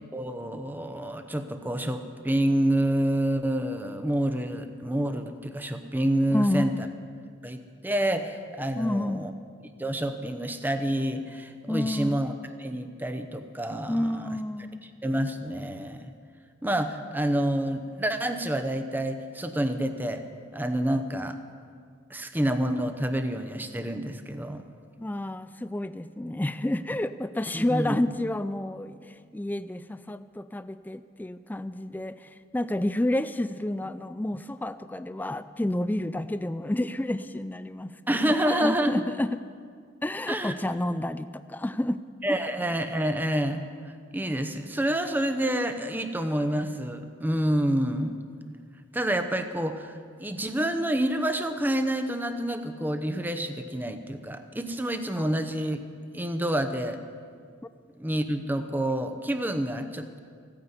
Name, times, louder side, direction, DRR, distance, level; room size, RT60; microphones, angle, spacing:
voice 1, 0.1-6.7 7.4-9.3 9.8-12.3 12.6-14.3 14.8-16.1 16.6-20.2 20.5-21.4 22.1-24.6 27.5-28.0 38.1-38.9 40.3-40.5 42.2-43.6 44.1-48.2 48.9-49.9 50.2-55.8 56.1-57.0 58.0-60.2, right 1 dB, 10° right, 8 dB, 0.8 m, -28 dB
voice 2, 6.3-6.7 8.8-9.3 11.7-12.2 13.9-14.8 25.0-39.4 40.0-42.0 55.2-55.3, left 1 dB, 10° left, 12 dB, 0.3 m, -30 dB
15.5 x 9.6 x 8.2 m, 2.1 s
head